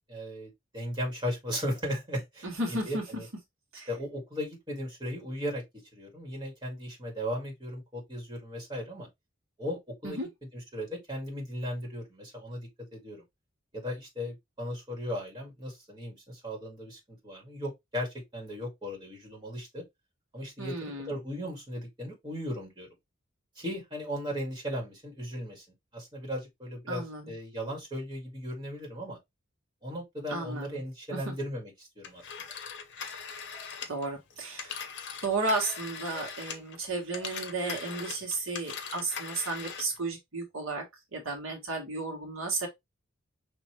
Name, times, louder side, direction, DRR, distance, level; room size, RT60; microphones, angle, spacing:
voice 1, 0.0-2.5 2.9-3.3 3.9-5.6 5.9-9.1 9.6-10.2 10.7-13.2 13.7-19.8 20.3-22.9 23.6-25.6 25.9-29.2 29.8-32.3, equal, 20° right, 2.3 m, -37 dB
voice 2, 2.4-3.0 3.7-3.9 10.0-10.3 20.6-21.1 26.9-27.3 30.3-30.8 31.1-31.2 33.9-34.9 35.2-40.8 41.1-42.7, right 3 dB, 80° right, 1.7 m, -33 dB
Telephone, 32.0-36.8 37.1-40.0, left 6 dB, 60° left, 0.9 m, -41 dB
sound 1, 33.5-34.1 35.6-36.3 37.1-37.8, left 5 dB, 35° left, 1.1 m, -49 dB
5.4 x 3.0 x 3.1 m
head